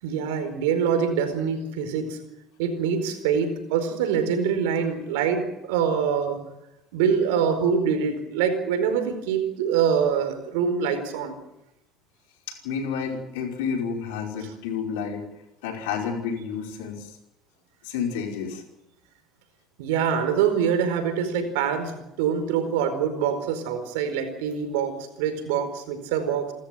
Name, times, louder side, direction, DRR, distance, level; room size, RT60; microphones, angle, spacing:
voice 1, 0.0-2.2 2.6-6.4 6.9-11.3 19.8-26.5, right 7 dB, 85° right, 8 dB, 4.6 m, -25 dB
voice 2, 12.5-15.2 15.6-17.1 17.8-18.6, left 6 dB, 85° left, 2 dB, 5.2 m, -30 dB
29.0 x 13.5 x 9.2 m, 0.90 s
supercardioid pair, 80°, 0 cm